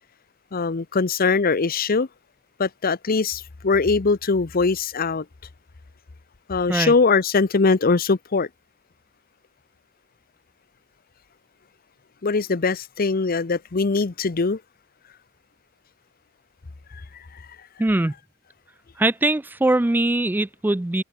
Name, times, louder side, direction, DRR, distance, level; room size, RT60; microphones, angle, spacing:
voice 1, 0.5-2.1 2.6-5.3 6.5-8.5 12.2-14.6, left 4 dB, 45° left, 0.7 m, -21 dB
voice 2, 17.8-18.1 19.0-21.0, right 2 dB, 10° right, 0.3 m, -21 dB
open air
head